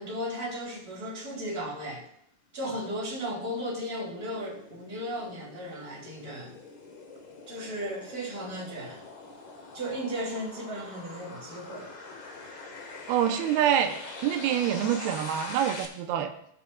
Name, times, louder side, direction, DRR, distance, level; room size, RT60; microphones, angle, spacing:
voice 1, 0.0-2.1 2.5-6.6 7.5-9.0 9.7-11.9, equal, 25° right, -5 dB, 3.4 m, -35 dB
sound 1, 2.9-15.9, left 3 dB, 75° left, 1.0 m, -44 dB
voice 2, 13.1-13.9 14.2-16.3, right 10 dB, 90° right, 5 dB, 2.7 m, -26 dB
19.0 x 7.0 x 2.3 m, 0.73 s
omnidirectional pair, 4.4 m